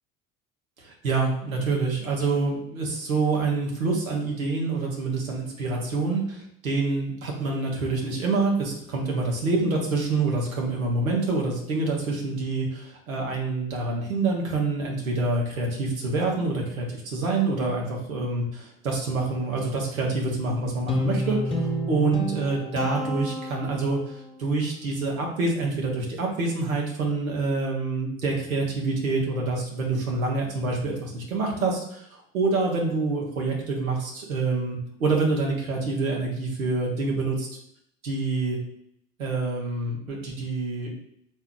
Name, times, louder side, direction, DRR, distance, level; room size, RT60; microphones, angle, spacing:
voice 1, 0.8-32.1 32.3-37.5 38.0-38.6 39.2-40.9, right 3 dB, 85° right, -1 dB, 1.0 m, -26 dB
Guitar, 20.9-24.2, equal, 15° left, 1.2 m, -29 dB
4.4 x 2.8 x 3.7 m, 0.71 s
figure-of-eight pair, 55°, 40 cm